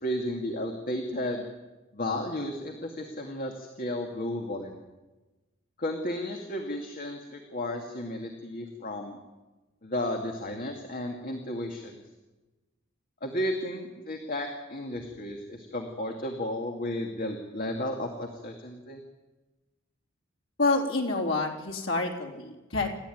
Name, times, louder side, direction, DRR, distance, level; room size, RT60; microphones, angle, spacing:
voice 1, 0.0-1.5 1.9-4.8 5.8-9.2 9.8-12.0 13.2-19.0, left 1 dB, 45° left, 3 dB, 2.3 m, -33 dB
voice 2, 20.6-22.9, left 3 dB, 85° left, 2 dB, 3.6 m, -28 dB
28.5 x 13.5 x 9.4 m, 1.2 s
head